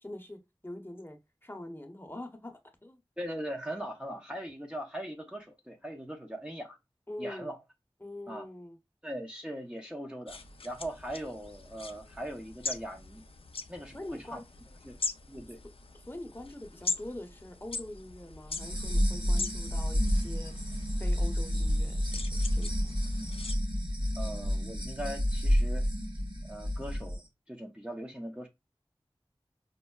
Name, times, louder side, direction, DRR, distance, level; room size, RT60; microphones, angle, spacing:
voice 1, 0.0-3.0 7.1-7.5 8.0-8.8 13.9-14.4 16.1-22.9, left 1 dB, 20° left, 0.8 m, -44 dB
voice 2, 3.2-6.8 7.2-7.6 8.3-8.5 9.0-13.2 13.7-14.4 14.8-14.9 15.3-15.6 24.2-25.9 26.4-28.5, equal, 10° right, 0.6 m, -40 dB
sound 1, 10.3-23.6, left 4 dB, 70° left, 0.4 m, -41 dB
sound 2, 18.5-27.2, equal, 55° right, 1.2 m, -30 dB
5.2 x 2.0 x 2.3 m
wide cardioid pair, 40°, 10 cm